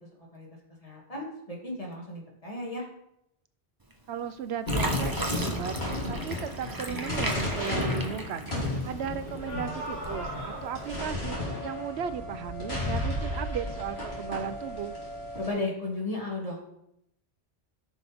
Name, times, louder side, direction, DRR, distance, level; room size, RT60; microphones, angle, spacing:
voice 1, 0.8-2.8 15.4-16.6, left 2 dB, 35° left, -3 dB, 2.4 m, -34 dB
Fill (with liquid), 3.9-4.3 4.7-9.1 9.5-10.3 10.8-11.0, right 1 dB, 20° right, 1.0 m, -37 dB
voice 2, 4.1-5.8 6.1-8.5 8.8-15.0, right 8 dB, 80° right, 12 dB, 0.9 m, -36 dB
sound 1, 4.7-15.5, left 1 dB, 75° left, 3.4 m, -33 dB
14.0 x 6.4 x 3.5 m, 0.80 s
omnidirectional pair, 1.1 m